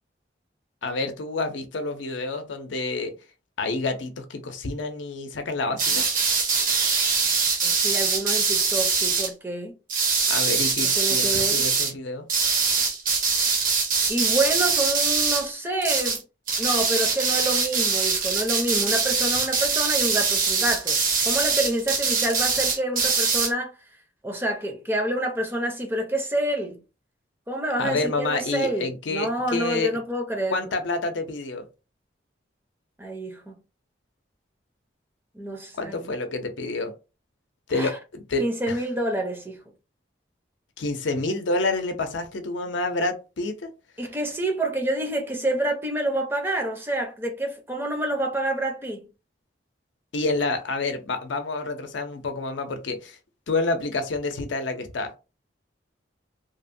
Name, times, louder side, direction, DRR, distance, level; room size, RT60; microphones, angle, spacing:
voice 1, 0.8-3.1 3.6-6.0 10.3-12.2 27.8-29.9 30.5-31.7 35.8-36.9 37.7-38.8 40.8-43.7 50.1-53.2 53.5-55.1, left 3 dB, 80° left, 0.6 m, -28 dB
sound 1, 5.8-9.3 9.9-11.9 12.3-15.5 15.8-16.2 16.5-23.5, right 5 dB, 45° right, 0.7 m, -23 dB
voice 2, 7.6-9.7 11.0-11.6 14.1-16.2 16.6-23.7 24.2-26.8 27.5-30.7 33.0-33.6 35.3-36.1 37.7-38.0 38.4-39.6 44.0-49.1, right 1 dB, 10° right, 0.5 m, -28 dB
2.9 x 2.1 x 2.6 m
head